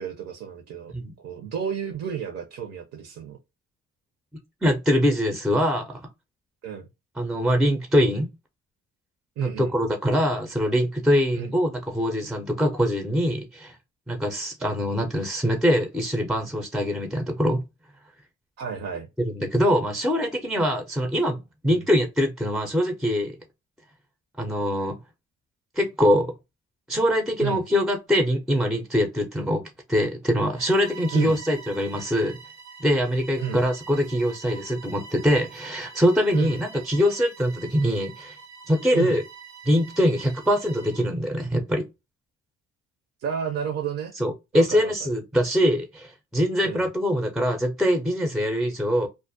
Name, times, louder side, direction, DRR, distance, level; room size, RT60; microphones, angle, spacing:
voice 1, 0.0-3.4 6.6-6.9 9.4-9.7 11.3-11.5 18.6-19.1 21.7-21.8 27.4-27.6 31.1-31.4 33.4-33.6 36.3-36.5 38.9-39.2 43.2-44.1 44.5-44.9 46.6-46.8, right 8 dB, 55° right, 0.6 m, -32 dB
voice 2, 4.6-6.0 7.2-8.3 9.4-13.7 14.1-17.6 19.2-21.4 21.6-23.4 24.4-25.0 25.8-26.3 26.9-29.6 29.9-32.4 32.8-38.4 38.7-39.2 39.7-41.9 44.2-49.1, equal, ahead, 0.4 m, -23 dB
Bowed string instrument, 30.5-41.1, right 6 dB, 80° right, 1.2 m, -45 dB
2.3 x 2.1 x 2.5 m
cardioid pair, 90°, 30 cm